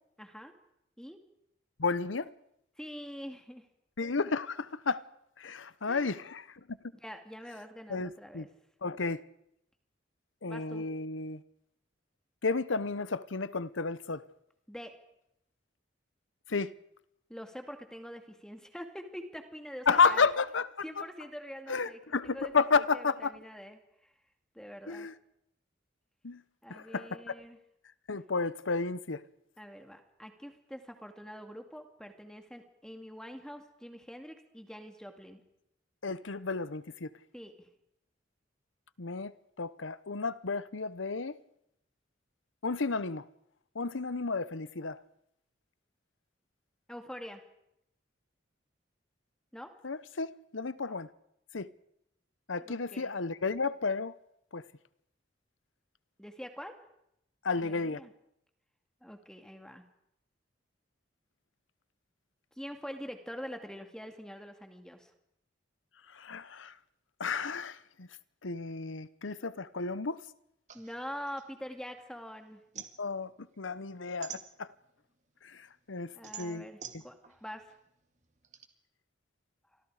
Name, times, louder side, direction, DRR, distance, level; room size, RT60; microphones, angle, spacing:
voice 1, 0.2-0.5 1.0-1.2 2.8-3.7 5.9-6.2 7.0-8.5 10.5-10.8 14.7-14.9 17.3-20.3 20.8-22.5 22.8-24.1 24.5-25.1 26.6-27.6 29.6-35.4 37.3-37.7 46.9-47.4 49.5-49.7 50.9-51.0 52.6-53.1 56.2-56.7 57.6-58.1 59.0-59.9 62.6-65.1 70.7-72.6 76.1-76.8 77.0-77.7 79.7-79.8, equal, 5° left, 2.3 m, -45 dB
voice 2, 1.8-2.3 4.0-5.0 5.4-6.8 7.9-8.5 8.8-9.2 10.4-11.4 12.4-14.2 16.5-16.7 19.9-20.7 21.0-21.1 21.7-23.3 24.9-25.1 26.2-26.4 26.7-27.4 28.1-29.2 36.0-37.1 39.0-41.4 42.6-43.3 43.7-45.0 49.8-51.1 51.5-51.7 52.5-54.1 54.5-54.6 57.4-58.0 66.1-66.7 67.2-68.1 68.4-70.2 73.0-74.7 75.4-76.7, left 4 dB, 90° left, 1.0 m, -32 dB
sound 1, 70.7-72.2 72.5-75.0 75.5-78.6, right 8 dB, 40° right, 2.1 m, -47 dB
29.5 x 25.0 x 5.0 m
head